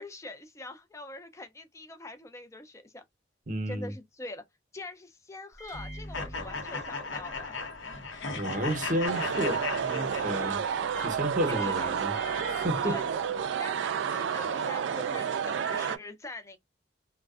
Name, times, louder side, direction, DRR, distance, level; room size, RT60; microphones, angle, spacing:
voice 1, 0.0-3.0 3.7-4.4 4.7-7.6 10.1-10.7 11.5-12.0 12.8-13.0 13.6-16.6, left 2 dB, 15° left, 0.4 m, -43 dB
voice 2, 3.5-3.9 8.4-10.6 11.0-12.1 12.4-13.0, right 1 dB, 45° right, 0.7 m, -31 dB
Microwave oven, 5.5-13.7, equal, 60° left, 1.0 m, -48 dB
sound 1, 6.1-10.7, left 4 dB, 85° left, 0.7 m, -36 dB
sound 2, 9.0-16.0, right 7 dB, 70° right, 0.3 m, -30 dB
2.5 x 2.1 x 2.3 m
head